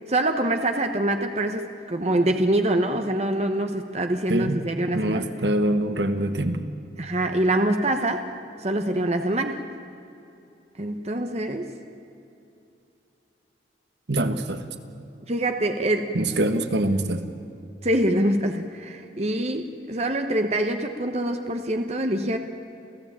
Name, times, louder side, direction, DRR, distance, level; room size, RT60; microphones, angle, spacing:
voice 1, 0.1-5.3 7.0-8.3 8.6-9.6 10.8-11.7 15.3-16.2 17.8-22.4, right 1 dB, 35° right, 6 dB, 1.1 m, -25 dB
voice 2, 4.3-4.6 4.9-6.7 14.1-14.6 16.1-17.3, right 1 dB, 70° right, 8 dB, 1.5 m, -24 dB
28.5 x 16.0 x 8.9 m, 2.7 s
head